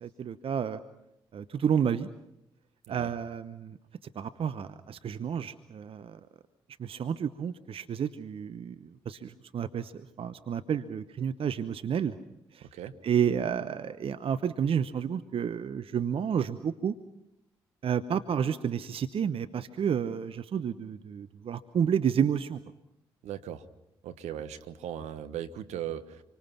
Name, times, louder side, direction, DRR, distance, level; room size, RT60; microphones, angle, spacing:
voice 1, 0.0-0.8 1.3-2.1 2.9-3.8 4.1-6.2 6.8-9.9 10.2-12.2 12.5-12.7 13.0-16.9 17.8-22.6, right 8 dB, 50° right, 12 dB, 0.9 m, -30 dB
voice 2, 12.6-12.9 23.2-23.6 24.0-26.2, right 10 dB, 65° right, 10 dB, 1.2 m, -38 dB
27.5 x 24.5 x 5.9 m, 0.87 s
hypercardioid pair, 40°, 12 cm